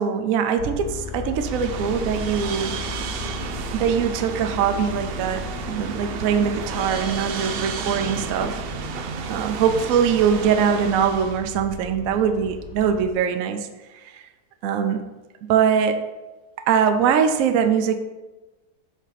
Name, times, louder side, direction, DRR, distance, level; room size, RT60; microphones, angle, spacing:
voice 1, 0.0-2.8 3.7-8.6 9.3-13.7 13.9-14.2 14.6-15.0 15.5-16.0 16.7-17.9, right 7 dB, 70° right, 7 dB, 0.9 m, -22 dB
sound 1, 0.6-13.1, left 3 dB, 60° left, 0.9 m, -36 dB
sound 2, 1.3-11.5, right 6 dB, 90° right, 0.5 m, -32 dB
8.2 x 2.8 x 5.7 m, 1.1 s
omnidirectional pair, 1.6 m